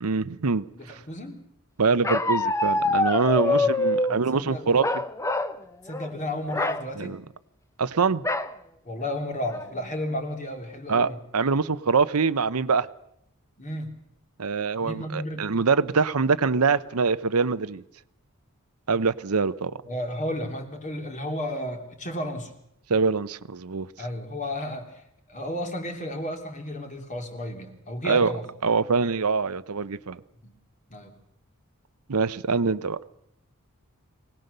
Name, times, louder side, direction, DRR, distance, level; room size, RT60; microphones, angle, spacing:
voice 1, 0.0-1.0 1.8-4.9 7.0-7.2 7.8-8.2 10.9-12.9 14.4-17.8 18.9-19.7 22.9-23.9 28.0-28.3 28.6-30.2 32.1-33.0, right 4 dB, 75° right, 0.8 m, -24 dB
voice 2, 0.7-1.4 3.4-3.7 4.1-4.8 5.8-7.2 8.8-11.2 13.6-13.9 14.8-15.5 19.9-22.5 24.0-25.0 25.3-28.5 30.4-30.5 30.9-31.1, left 1 dB, 35° left, 3.1 m, -33 dB
Bark, 2.0-4.2 4.8-5.6 5.9-6.1 6.5-6.8 8.2-8.5 9.1-9.2 9.5-9.9, left 2 dB, 15° left, 0.8 m, -25 dB
24.0 x 18.5 x 6.8 m
head